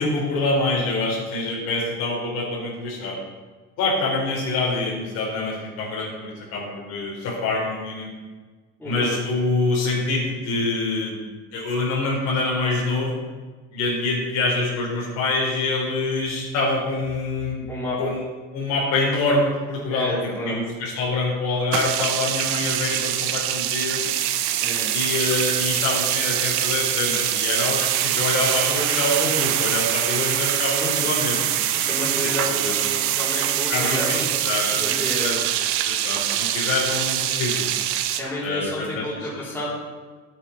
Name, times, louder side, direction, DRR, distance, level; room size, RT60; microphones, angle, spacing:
voice 1, 0.0-3.2 3.8-8.1 8.8-11.2 11.5-13.1 13.7-17.7 18.0-18.2 18.5-20.2 20.4-24.0 24.9-31.5 32.2-32.7 33.7-34.9 35.2-35.4 35.9-37.7 38.4-39.4, left 2 dB, 60° left, -2 dB, 3.7 m, -25 dB
voice 2, 8.8-9.1 17.7-18.1 19.9-20.6 24.6-24.9 30.8-31.1 31.7-34.4 34.7-35.3 38.2-39.7, left 1 dB, 5° left, -8 dB, 3.7 m, -30 dB
sound 1, 21.7-38.2, right 12 dB, 70° right, 0.9 m, -24 dB
12.0 x 9.2 x 4.3 m, 1.4 s
cardioid pair, 160°, 31 cm